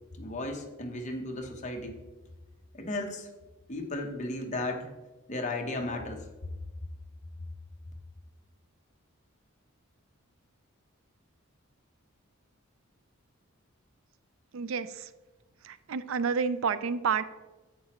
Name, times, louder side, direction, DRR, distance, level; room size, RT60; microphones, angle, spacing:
voice 1, 0.2-2.0 2.7-3.3 3.7-4.9 5.3-6.5, left 2 dB, 35° left, 2 dB, 1.0 m, -35 dB
voice 2, 14.5-15.1 15.6-17.2, right 6 dB, 65° right, 14 dB, 0.4 m, -30 dB
10.5 x 8.4 x 3.1 m, 1.2 s
head